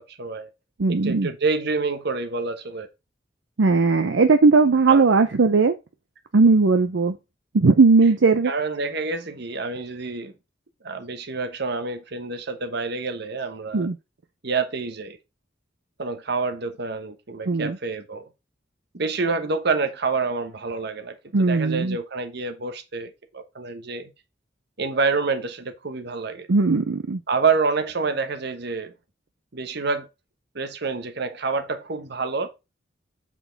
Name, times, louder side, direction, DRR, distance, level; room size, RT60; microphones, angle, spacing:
voice 1, 0.1-0.5 0.9-2.9 4.9-5.1 8.4-10.3 10.8-13.9 14.4-15.2 16.0-18.3 18.9-24.1 24.8-26.5 27.3-28.9 29.5-30.1 30.5-32.5, right 4 dB, 60° right, 1.1 m, -27 dB
voice 2, 0.8-1.3 3.6-5.7 6.3-7.1 7.5-8.5 13.7-13.9 17.5-17.8 21.3-22.0 26.5-27.2, right 4 dB, 80° right, 0.6 m, -18 dB
8.0 x 4.6 x 3.9 m
head